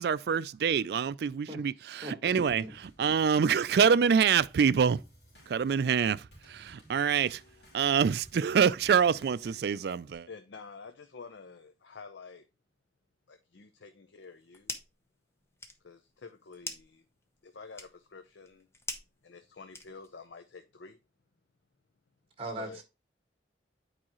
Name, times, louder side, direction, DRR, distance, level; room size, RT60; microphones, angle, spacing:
voice 1, 0.0-5.0 5.5-7.4 7.7-10.3, right 6 dB, 60° right, 0.3 m, -26 dB
Drum kit / Snare drum / Bass drum, 2.5-10.2, equal, 65° left, 3.0 m, -58 dB
voice 2, 10.3-12.5 13.3-14.8 15.8-17.0 17.4-18.7 19.2-21.0 22.5-22.8, left 4 dB, 85° left, 0.6 m, -49 dB
sound 1, 14.2-15.1 15.4-20.3, left 2 dB, 15° left, 0.8 m, -44 dB
voice 3, 22.4-22.8, right 1 dB, 30° right, 1.6 m, -38 dB
8.7 x 4.8 x 3.0 m
head